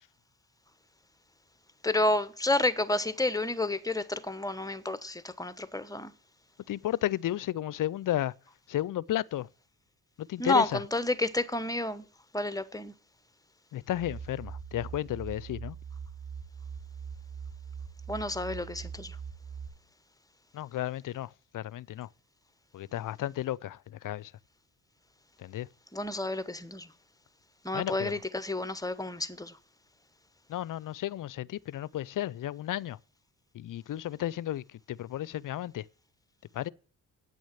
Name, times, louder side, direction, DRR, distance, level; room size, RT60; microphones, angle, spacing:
voice 1, 1.8-6.1 10.4-12.1 12.3-12.9 18.1-19.2 25.9-26.9 27.6-29.6, left 2 dB, 10° left, 1.2 m, -30 dB
voice 2, 6.7-8.3 8.7-9.5 10.2-10.8 13.7-15.8 20.5-22.1 22.7-24.3 25.4-25.7 27.7-28.1 30.5-33.0 33.5-35.9 36.5-36.7, left 13 dB, 55° left, 0.5 m, -33 dB
sound 1, 13.9-19.7, right 6 dB, 80° right, 5.8 m, -42 dB
9.1 x 6.3 x 8.4 m
supercardioid pair, 50°, 39 cm